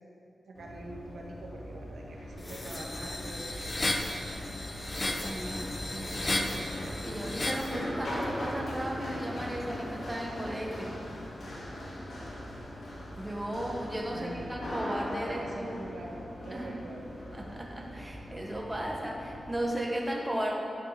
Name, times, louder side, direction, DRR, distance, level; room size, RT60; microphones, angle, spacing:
Run, 0.5-19.6, left 1 dB, 65° left, 2.8 m, -40 dB
voice 1, 0.5-4.5 14.1-14.5 15.0-17.0, right 1 dB, 75° right, -1 dB, 1.5 m, -45 dB
sound 1, 2.4-7.7, left 2 dB, 30° left, 0.8 m, -34 dB
voice 2, 5.0-11.0 13.2-15.8 16.5-16.7 17.3-20.5, right 1 dB, 15° right, -2 dB, 1.4 m, -35 dB
12.0 x 7.5 x 5.2 m, 2.7 s
wide cardioid pair, 125°, 0 cm